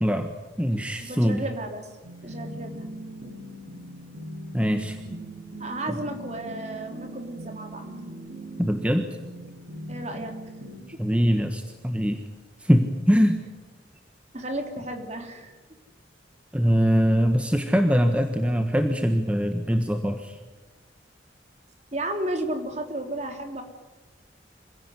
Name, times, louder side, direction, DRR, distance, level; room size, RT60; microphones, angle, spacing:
voice 1, 0.0-1.4 4.5-5.2 8.6-9.1 11.0-12.2 12.6-13.4 16.5-20.4, equal, 5° right, 5 dB, 1.4 m, -23 dB
voice 2, 1.0-1.9 2.2-2.9 5.6-7.9 9.9-10.3 14.3-15.6 21.9-23.6, right 1 dB, 40° right, 4 dB, 3.4 m, -33 dB
sound 1, 2.0-10.8, right 1 dB, 85° right, 6.0 m, -40 dB
26.0 x 17.0 x 9.9 m, 1.2 s
head